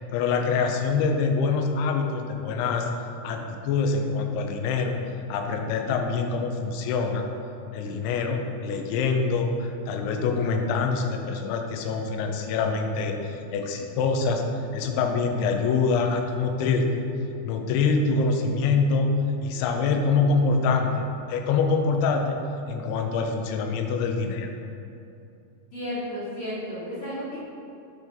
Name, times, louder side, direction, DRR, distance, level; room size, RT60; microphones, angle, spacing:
voice 1, 0.1-2.9 3.2-5.0 5.3-7.2 7.7-14.4 14.7-16.9 17.4-19.1 19.4-20.9 21.3-22.4 22.7-24.5, left 4 dB, 90° left, 4 dB, 2.7 m, -25 dB
voice 2, 25.7-27.4, left 1 dB, 50° left, -11 dB, 1.8 m, -33 dB
8.3 x 4.4 x 3.3 m, 2.7 s
omnidirectional pair, 4.6 m